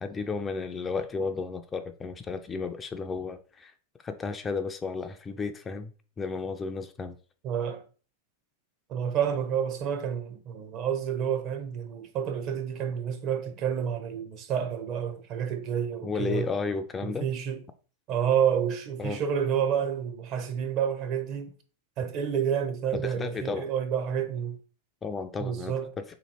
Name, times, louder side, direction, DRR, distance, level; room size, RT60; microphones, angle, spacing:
voice 1, 0.0-3.7 4.0-5.9 6.2-7.2 16.0-17.3 19.0-19.2 22.9-23.7 25.0-26.0, left 4 dB, 20° left, 0.4 m, -33 dB
voice 2, 7.4-7.8 8.9-16.5 17.0-17.6 18.1-21.5 22.0-24.6 25.4-25.9, right 8 dB, 45° right, 0.7 m, -29 dB
3.0 x 2.7 x 4.2 m
hypercardioid pair, 110°, 0 cm